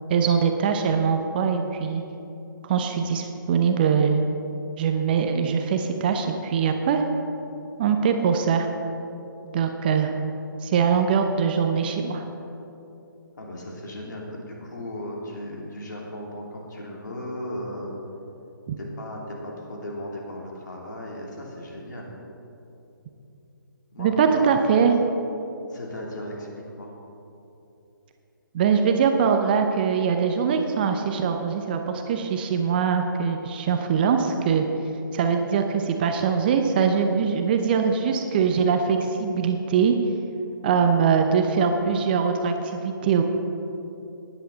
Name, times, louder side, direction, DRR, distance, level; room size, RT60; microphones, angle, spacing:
voice 1, 0.1-2.0 2.6-4.2 4.8-7.0 7.8-8.7 9.5-10.1 10.6-12.2 18.7-18.8 24.0-24.9 28.5-34.7 35.1-39.9 40.6-43.2, right 6 dB, 25° right, 5 dB, 0.7 m, -22 dB
voice 2, 13.4-17.9 18.8-22.1 23.9-24.5 25.7-26.5 26.8-26.9, left 1 dB, 60° left, -2 dB, 3.0 m, -36 dB
16.0 x 10.0 x 4.0 m, 2.9 s
figure-of-eight pair, 140°, 11 cm